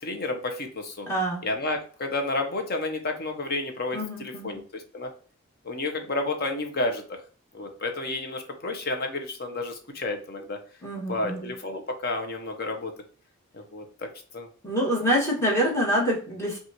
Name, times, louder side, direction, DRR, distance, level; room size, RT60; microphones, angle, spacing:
voice 1, 0.0-1.1 1.4-5.1 5.6-7.0 7.5-10.6 11.1-12.9 13.5-14.1 14.3-14.5, left 2 dB, 45° left, 5 dB, 0.7 m, -31 dB
voice 2, 1.1-1.4 3.9-4.6 10.8-11.5 14.6-16.6, equal, 15° left, -4 dB, 1.5 m, -26 dB
5.6 x 2.4 x 2.8 m, 0.42 s
head